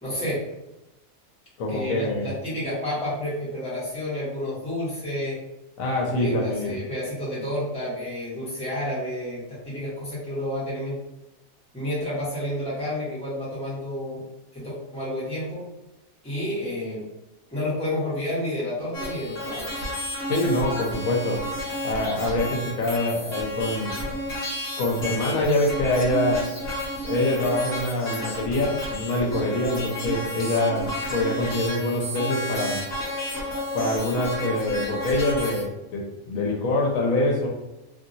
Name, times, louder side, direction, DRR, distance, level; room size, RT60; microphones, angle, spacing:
voice 1, 0.0-0.4 1.7-5.4 6.0-11.0 11.7-14.2 14.5-15.6 16.2-17.0 17.5-19.7, left 1 dB, 5° left, -9 dB, 1.3 m, -30 dB
voice 2, 1.6-2.3 5.8-6.8 20.3-21.5 21.8-23.9 24.8-26.5 27.0-32.9 33.7-37.5, left 1 dB, 75° left, -1 dB, 1.1 m, -25 dB
sound 1, 18.9-35.7, equal, 50° left, 1.1 m, -31 dB
2.9 x 2.7 x 2.6 m, 0.95 s
omnidirectional pair, 1.5 m